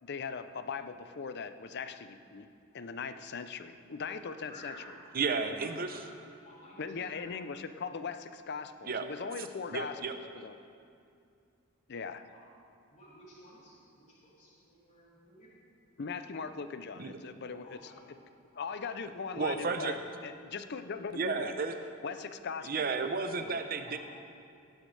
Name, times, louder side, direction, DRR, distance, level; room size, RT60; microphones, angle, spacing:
voice 1, 0.0-2.5 2.7-4.7 6.8-10.5 11.9-12.2 16.0-17.8 18.6-21.5 22.0-22.9 23.4-23.6, left 5 dB, 55° left, 11 dB, 0.5 m, -40 dB
voice 2, 4.4-4.9 5.6-6.1 6.4-7.4 12.2-12.4 12.9-15.5 17.6-18.1 18.5-18.7 23.8-23.9, left 1 dB, 35° left, -8 dB, 3.5 m, -54 dB
voice 3, 5.1-5.9 8.8-9.1 9.7-10.1 17.0-17.2 19.4-20.0 21.1-21.8 22.6-24.0, right 4 dB, 45° right, 8 dB, 0.7 m, -32 dB
17.0 x 11.5 x 3.3 m, 2.5 s
head